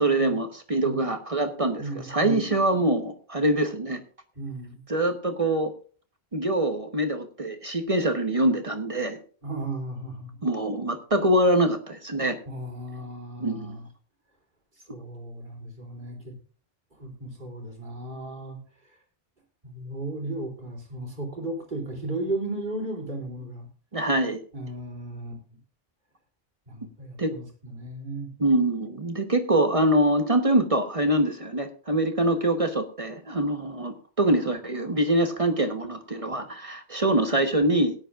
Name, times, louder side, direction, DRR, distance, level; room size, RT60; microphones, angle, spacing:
voice 1, 0.0-4.0 4.9-5.7 6.3-9.2 10.4-12.4 13.4-13.8 23.9-24.4 27.2-27.3 28.4-37.9, right 1 dB, 35° right, 6 dB, 1.1 m, -24 dB
voice 2, 1.8-2.4 4.3-4.8 9.4-10.4 12.5-13.9 14.9-16.4 17.0-18.6 19.6-23.7 24.5-25.4 26.7-28.3, right 2 dB, 55° right, 0 dB, 3.3 m, -35 dB
18.5 x 9.9 x 2.4 m, 0.41 s
omnidirectional pair, 1.1 m